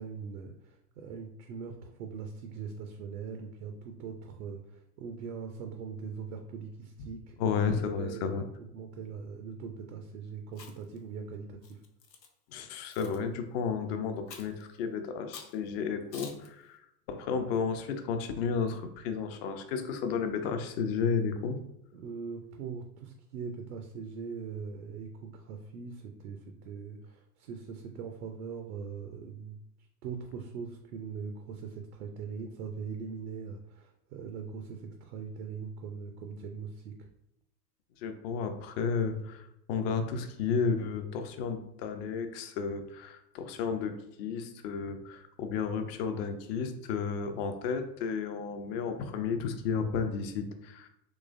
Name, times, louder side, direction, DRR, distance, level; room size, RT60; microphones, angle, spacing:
voice 1, 0.0-7.4 7.8-8.3 8.6-11.8 21.9-29.6 30.0-37.1, right 5 dB, 60° right, 4 dB, 0.6 m, -41 dB
voice 2, 7.4-8.4 12.5-16.8 17.1-21.6 38.0-50.9, left 5 dB, 40° left, 7 dB, 0.5 m, -32 dB
Chewing mastication, 10.5-11.0 11.6-12.3 12.9-13.2 14.3-14.6 15.3-15.6 16.1-16.5, left 5 dB, 85° left, 0.7 m, -47 dB
3.8 x 2.9 x 2.5 m, 0.80 s
figure-of-eight pair, 90°, 49 cm